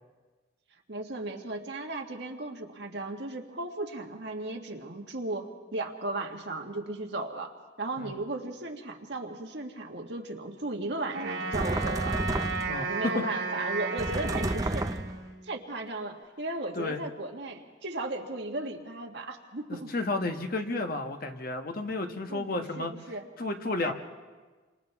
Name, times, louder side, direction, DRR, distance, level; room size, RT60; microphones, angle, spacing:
voice 1, 0.9-12.2 12.7-15.0 15.4-19.9 22.3-23.2 23.8-23.9, right 2 dB, 60° right, 2 dB, 1.9 m, -36 dB
Wind instrument woodwind instrument, 11.1-15.5, right 4 dB, 80° right, 2.4 m, -34 dB
sound 1, 11.5-12.9 14.0-15.3, right 1 dB, 20° right, 0.5 m, -31 dB
voice 2, 19.9-22.9 23.4-23.9, left 2 dB, 50° left, 5 dB, 1.2 m, -32 dB
29.0 x 26.0 x 3.6 m, 1.4 s
head